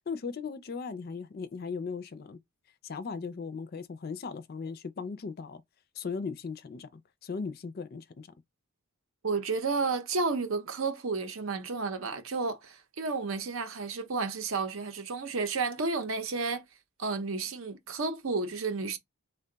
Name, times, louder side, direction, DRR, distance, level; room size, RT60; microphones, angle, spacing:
voice 1, 0.1-2.4 2.8-5.6 6.0-8.3, left 5 dB, 45° left, 0.4 m, -38 dB
voice 2, 9.2-16.6 17.0-19.0, right 4 dB, 70° right, 0.7 m, -32 dB
3.3 x 2.3 x 3.8 m
head